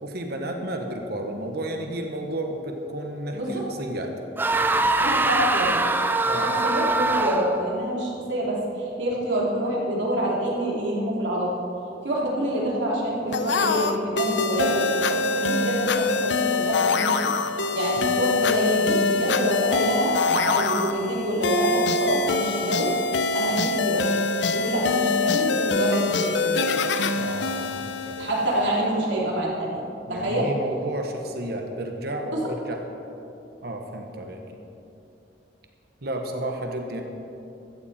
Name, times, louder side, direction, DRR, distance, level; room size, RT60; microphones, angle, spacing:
voice 1, 0.0-4.2 6.3-6.7 18.0-18.1 27.1-28.3 30.1-32.8 33.6-34.6 36.0-37.0, right 1 dB, 60° right, 3 dB, 1.3 m, -32 dB
voice 2, 3.3-3.6 4.9-5.8 6.6-11.5 12.0-17.2 17.7-22.9 23.3-24.1 24.4-26.8 28.2-29.8 30.1-30.5 32.3-32.4, right 1 dB, 85° right, -4 dB, 3.4 m, -26 dB
sound 1, 4.4-7.7, right 2 dB, 10° right, 0.5 m, -23 dB
sound 2, 13.3-28.8, left 3 dB, 75° left, 0.7 m, -24 dB
15.5 x 14.0 x 4.4 m, 2.8 s
head